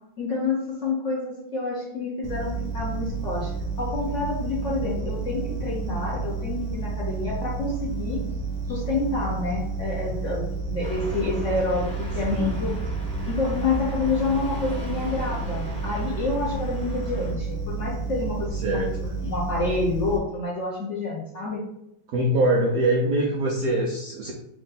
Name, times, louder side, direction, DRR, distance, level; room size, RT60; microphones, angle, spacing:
voice 1, 0.2-3.5 3.8-8.2 8.7-11.9 12.1-12.7 13.3-18.5 18.9-21.6, left 3 dB, 55° left, -5 dB, 0.9 m, -28 dB
sound 1, 2.2-20.2, right 4 dB, 65° right, 1.1 m, -31 dB
sound 2, 10.8-17.3, right 1 dB, 5° left, 0.7 m, -37 dB
voice 2, 12.3-12.7 18.5-18.9 22.1-24.3, right 1 dB, 80° right, 0 dB, 0.8 m, -23 dB
3.6 x 2.5 x 4.0 m, 0.80 s
omnidirectional pair, 2.2 m